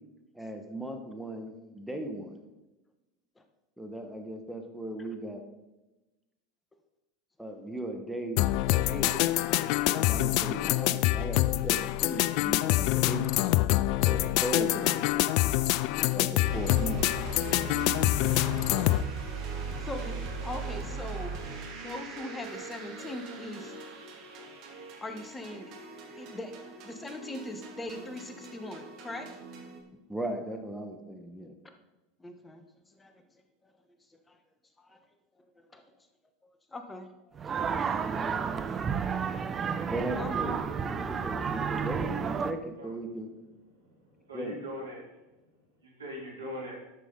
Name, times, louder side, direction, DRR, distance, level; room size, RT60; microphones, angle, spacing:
voice 1, 0.3-2.4 3.8-5.5 7.4-9.2 10.0-13.5 14.0-15.4 16.1-17.0 30.1-31.5 39.9-43.3 44.3-44.6, right 1 dB, ahead, 3 dB, 1.4 m, -37 dB
sound 1, 8.4-19.0, left 16 dB, 55° left, 0.4 m, -26 dB
sound 2, 16.4-29.8, right 4 dB, 50° right, 2.2 m, -40 dB
voice 2, 19.8-21.3 21.8-23.7 25.0-25.7 26.1-26.5 26.8-29.4 32.2-32.6 33.0-33.2 34.3-34.4 34.8-35.0 35.7-35.8 36.7-37.3 39.2-39.5 40.1-40.6 41.3-41.5, left 2 dB, 15° left, 7 dB, 1.2 m, -41 dB
sound 3, 37.3-42.5, right 6 dB, 30° right, 0.7 m, -31 dB
voice 3, 43.7-45.0 45.8-46.8, equal, 85° right, -4 dB, 3.8 m, -41 dB
11.5 x 7.5 x 3.9 m, 1.0 s
figure-of-eight pair, 80°, 0 cm